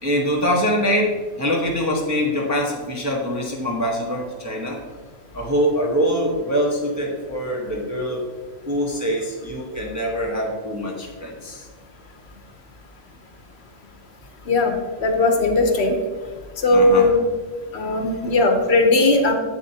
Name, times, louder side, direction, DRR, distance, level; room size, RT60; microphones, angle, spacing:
voice 1, 0.0-4.8 5.3-8.3 8.7-11.7 16.7-17.1, equal, 15° right, -2 dB, 0.8 m, -24 dB
voice 2, 14.5-14.8 15.0-16.0 16.6-17.2 17.7-19.3, left 2 dB, 60° left, 4 dB, 1.0 m, -17 dB
7.9 x 7.2 x 2.8 m, 1.4 s
omnidirectional pair, 1.3 m